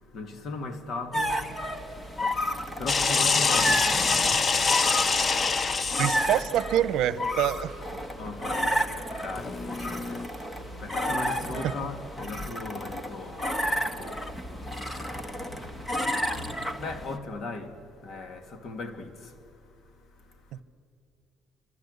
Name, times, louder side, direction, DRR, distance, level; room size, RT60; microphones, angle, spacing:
voice 1, 0.1-1.4 2.8-4.5 8.2-10.2 10.8-13.5 13.9-14.2 14.5-14.7 15.6-15.8 16.8-17.7 18.0-19.1, left 3 dB, 45° left, 2.6 m, -37 dB
sound 1, 1.1-17.2, equal, 10° left, 1.6 m, -31 dB
sound 2, 2.9-6.4 9.4-10.3, left 4 dB, 25° left, 0.7 m, -25 dB
voice 2, 6.0-7.8 11.6-11.7, right 11 dB, 70° right, 1.0 m, -26 dB
26.5 x 25.5 x 8.2 m
cardioid pair, 160°, 0 cm